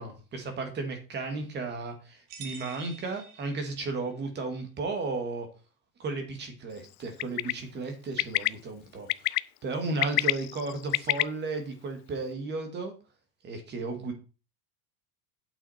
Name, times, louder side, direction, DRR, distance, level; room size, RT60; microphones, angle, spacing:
voice 1, 0.0-5.5 6.0-12.9 13.4-14.1, right 3 dB, 25° right, 6 dB, 2.1 m, -34 dB
sound 1, 2.3-4.1, right 6 dB, 45° right, 2.1 m, -47 dB
Bird, 7.2-7.5 8.2-8.5 9.1-9.4 9.9-11.2, left 23 dB, 80° left, 0.5 m, -25 dB
8.9 x 6.8 x 4.3 m, 0.33 s
cardioid pair, 165°, 43 cm